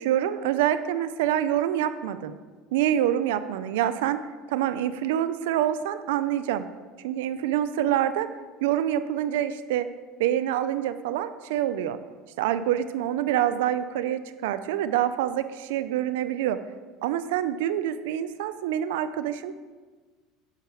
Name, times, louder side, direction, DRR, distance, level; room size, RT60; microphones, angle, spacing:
voice 1, 0.0-2.3 2.7-4.2 4.5-6.7 7.0-8.3 8.6-9.9 10.2-12.0 12.4-16.6 17.0-19.5, right 11 dB, 85° right, 12 dB, 0.7 m, -26 dB
10.5 x 5.8 x 7.0 m, 1.4 s
supercardioid pair, 105°, 0 cm